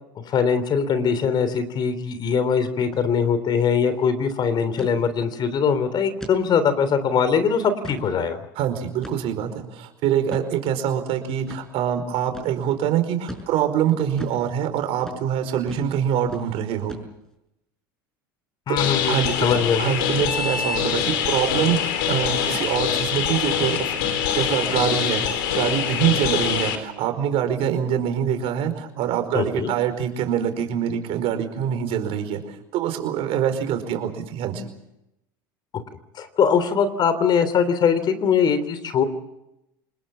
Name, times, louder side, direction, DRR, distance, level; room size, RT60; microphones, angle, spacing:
voice 1, 0.3-8.5 18.7-19.9 29.3-29.7 36.1-39.0, left 6 dB, 40° left, 12 dB, 3.4 m, -22 dB
sound 1, 2.8-3.0 3.3-3.4 3.8-4.1 4.8-5.0 5.5-5.6 6.2-6.4 6.9-7.0 7.6-8.1 9.0-9.4 10.3-10.5 11.5-11.6 12.3-12.5 13.3-13.5 14.2-14.4 15.0-15.2 15.7-15.9 16.2-16.5 16.9-17.3, equal, 5° left, 6.3 m, -38 dB
voice 2, 8.5-16.9 18.7-18.8 19.1-23.9 24.3-34.7, right 9 dB, 55° right, 7 dB, 4.9 m, -25 dB
sound 2, 18.8-26.8, left 8 dB, 75° left, 4.1 m, -24 dB
26.5 x 21.0 x 7.3 m, 0.86 s
hypercardioid pair, 95°, 11 cm